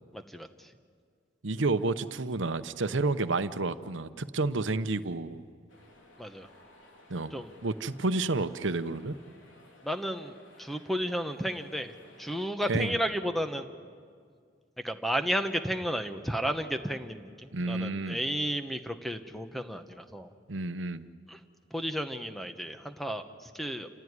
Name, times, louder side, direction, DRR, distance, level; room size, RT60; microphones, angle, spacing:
voice 1, 0.1-0.7 6.2-6.5 7.3-7.5 9.8-13.7 14.8-20.3 21.3-21.4 21.7-23.9, equal, ahead, 8 dB, 1.0 m, -33 dB
voice 2, 1.4-5.4 7.1-7.4 7.6-9.2 12.7-12.9 17.5-18.2 20.5-21.1, right 3 dB, 75° right, 12 dB, 0.9 m, -30 dB
sound 1, 5.7-12.5, left 1 dB, 80° left, 3.9 m, -57 dB
28.5 x 16.0 x 9.7 m, 2.1 s
head